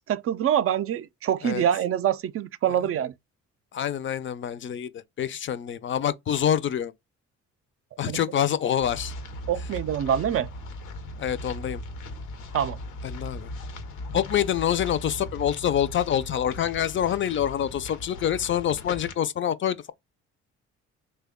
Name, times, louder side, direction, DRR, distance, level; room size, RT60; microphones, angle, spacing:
voice 1, 0.1-3.1 8.1-8.2 9.5-10.5 12.5-12.8, right 10 dB, 50° right, 0.4 m, -25 dB
voice 2, 3.7-6.9 8.0-9.1 11.2-11.8 13.0-13.5 14.1-19.9, left 10 dB, 40° left, 0.4 m, -26 dB
sound 1, 8.8-19.1, left 1 dB, 85° left, 0.7 m, -38 dB
3.3 x 2.2 x 3.5 m
cardioid pair, 90°, 30 cm